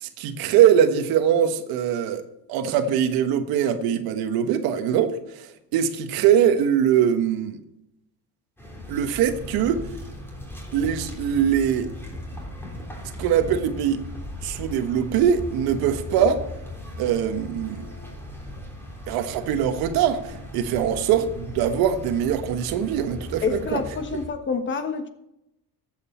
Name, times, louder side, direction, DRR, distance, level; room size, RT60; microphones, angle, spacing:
voice 1, 0.0-2.2 2.5-7.6 8.9-9.8 10.7-11.9 13.2-14.0 14.4-16.4 17.0-17.9 19.1-23.8, right 9 dB, 80° right, 1.4 m, -22 dB
sound 1, 8.6-24.3, left 1 dB, 5° left, 3.4 m, -38 dB
voice 2, 23.4-25.1, left 5 dB, 30° left, 1.3 m, -27 dB
14.0 x 8.1 x 4.4 m
cardioid pair, 130°, 36 cm